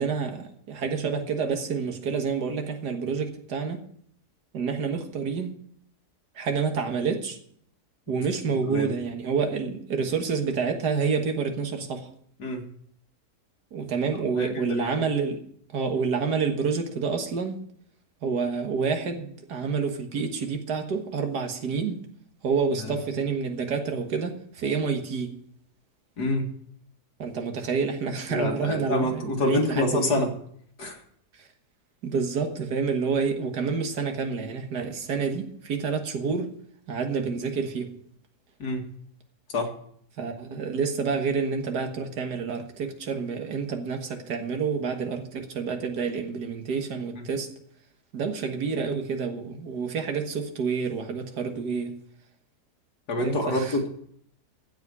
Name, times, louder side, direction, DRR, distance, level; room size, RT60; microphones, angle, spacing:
voice 1, 0.0-3.8 4.5-5.5 6.4-7.4 8.1-12.1 13.7-15.4 15.7-17.6 18.2-22.0 22.4-25.3 27.2-30.2 31.4-31.5 32.0-36.5 36.9-37.9 40.2-47.5 48.1-52.0 53.2-53.8, right 5 dB, 90° right, 2.0 m, -28 dB
voice 2, 14.4-14.9 22.8-23.0 26.2-26.5 28.3-30.3 30.8-31.0 38.6-38.8 39.5-39.7 47.2-47.3 53.1-53.9, left 1 dB, 80° left, 2.6 m, -27 dB
15.5 x 5.2 x 9.4 m
omnidirectional pair, 1.7 m